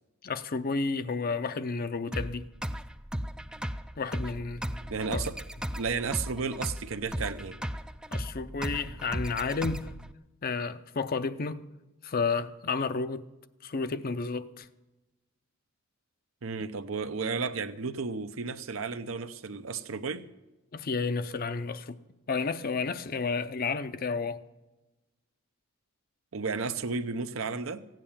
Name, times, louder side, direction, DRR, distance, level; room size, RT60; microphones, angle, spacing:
voice 1, 0.2-2.5 4.0-4.6 5.1-5.2 8.1-9.9 10.4-11.6 12.0-13.2 13.6-14.7 20.7-22.0 22.3-24.4, left 4 dB, 45° left, 0.6 m, -31 dB
sound 1, 2.1-10.1, equal, 5° right, 0.4 m, -36 dB
voice 2, 4.9-5.4 5.7-7.6 16.4-20.3 26.3-27.9, right 4 dB, 70° right, 0.7 m, -33 dB
16.0 x 9.1 x 7.2 m
head